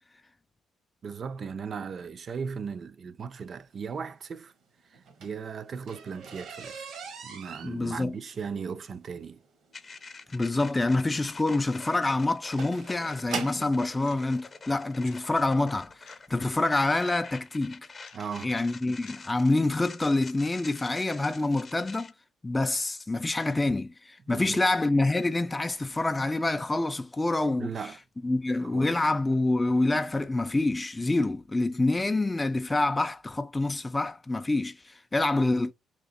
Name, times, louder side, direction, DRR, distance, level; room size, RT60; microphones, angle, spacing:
voice 1, 1.0-4.5 5.2-6.9 7.2-9.4 18.1-18.5 24.3-24.6 27.6-28.0 28.7-28.9, right 6 dB, 50° right, 0.4 m, -37 dB
sound 1, 4.9-13.8 14.7-14.8 15.4-15.6 15.9-16.0 16.3-16.4, right 5 dB, 70° right, 0.9 m, -41 dB
voice 2, 7.6-8.1 10.3-17.9 18.4-22.1 22.4-27.9 28.2-35.7, left 2 dB, 15° left, 0.3 m, -27 dB
sound 2, 9.7-22.1, left 4 dB, 35° left, 0.7 m, -46 dB
sound 3, 12.1-12.2 13.1-13.2 14.1-14.2 15.0-15.2 16.1-16.2 17.0-17.2 18.1-18.2 19.0-19.2 20.1-20.2 21.0-21.2, left 8 dB, 80° left, 0.7 m, -53 dB
2.9 x 2.8 x 3.9 m
cardioid pair, 90°, 0 cm